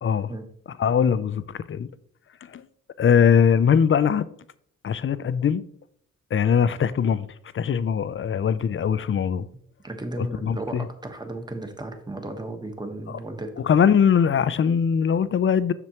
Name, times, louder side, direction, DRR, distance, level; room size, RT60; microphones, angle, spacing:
voice 1, 0.0-0.3 0.8-1.9 2.4-2.7 3.0-4.3 4.8-5.6 6.3-7.3 7.5-9.5 10.2-10.9 13.1-13.2 13.6-15.7, left 7 dB, 40° left, 0.5 m, -21 dB
voice 2, 9.8-13.5, right 2 dB, 15° right, 1.2 m, -34 dB
7.6 x 6.0 x 2.9 m
cardioid pair, 65°, 31 cm